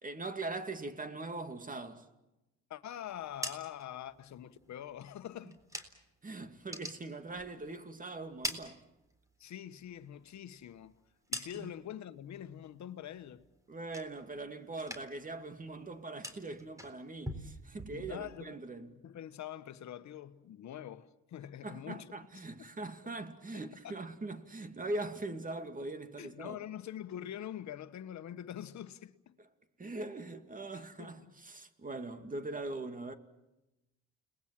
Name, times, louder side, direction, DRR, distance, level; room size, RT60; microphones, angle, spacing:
voice 1, 0.0-2.0 6.2-8.8 11.5-11.7 13.7-18.9 21.6-26.6 29.8-33.1, right 2 dB, 25° right, 2.5 m, -41 dB
voice 2, 2.7-5.6 9.4-10.9 11.3-13.5 17.9-18.6 19.0-22.1 22.6-22.7 23.0-23.1 23.8-24.0 26.2-29.4 30.7-31.3, left 11 dB, 65° left, 1.3 m, -44 dB
sound 1, 3.1-6.2 6.5-7.8 8.1-9.5 9.8-12.0 12.3-12.8 13.1-14.5 14.7-15.3 15.6-18.4, equal, 10° right, 3.9 m, -45 dB
30.0 x 20.5 x 7.6 m
cardioid pair, 90°, 30 cm